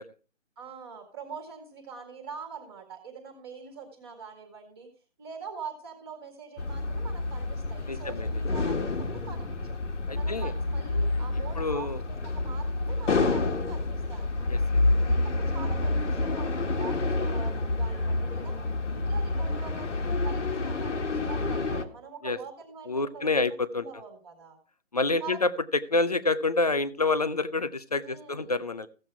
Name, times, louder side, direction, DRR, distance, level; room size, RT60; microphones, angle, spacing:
voice 1, 0.6-4.9 5.2-9.8 10.1-14.5 15.0-18.5 18.8-24.6 25.2-25.4 28.0-28.6, right 6 dB, 20° right, 5 dB, 1.8 m, -44 dB
sound 1, 6.6-21.8, left 2 dB, 70° left, 1.8 m, -28 dB
voice 2, 7.9-8.4 10.1-10.5 11.6-12.0 14.5-14.6 22.2-22.4 22.9-23.9 24.9-25.5 25.9-28.9, left 3 dB, 30° left, 15 dB, 0.5 m, -27 dB
15.0 x 7.7 x 4.6 m, 0.36 s
hypercardioid pair, 170°, 37 cm